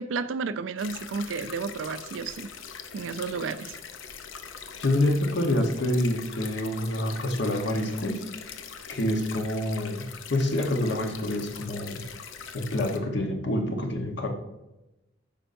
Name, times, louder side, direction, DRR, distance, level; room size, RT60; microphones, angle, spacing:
voice 1, 0.0-2.5 2.9-3.8, right 4 dB, 80° right, 14 dB, 0.4 m, -32 dB
sound 1, 0.8-13.0, left 6 dB, 85° left, 0.6 m, -42 dB
voice 2, 4.8-8.2 8.9-12.0 12.5-14.3, left 1 dB, 60° left, 3 dB, 1.0 m, -27 dB
8.8 x 5.5 x 2.6 m, 0.96 s
head